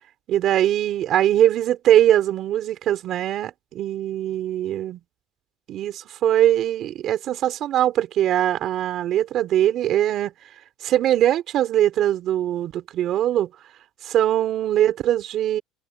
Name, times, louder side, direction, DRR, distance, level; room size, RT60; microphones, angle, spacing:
voice 1, 0.3-5.0 5.7-10.3 10.8-13.5 14.0-15.6, right 12 dB, 45° right, 3.4 m, -21 dB
cardioid pair, 145°, 0 cm